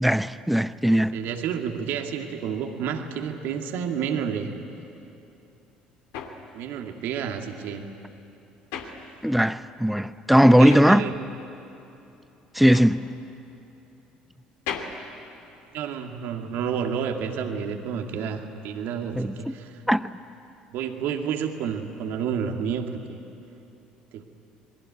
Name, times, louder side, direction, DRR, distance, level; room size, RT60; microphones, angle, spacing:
voice 1, 0.0-1.2 9.2-11.0 12.5-13.1 19.2-19.5 19.9-20.1, equal, ahead, 0.9 m, -19 dB
voice 2, 0.9-4.5 6.5-7.9 10.4-11.1 15.7-19.8 20.7-23.2 24.1-24.2, right 7 dB, 65° right, 2.2 m, -30 dB
sound 1, 5.4-9.7 10.0-16.2, left 6 dB, 70° left, 2.5 m, -39 dB
27.0 x 21.5 x 9.6 m
hypercardioid pair, 60°, 4 cm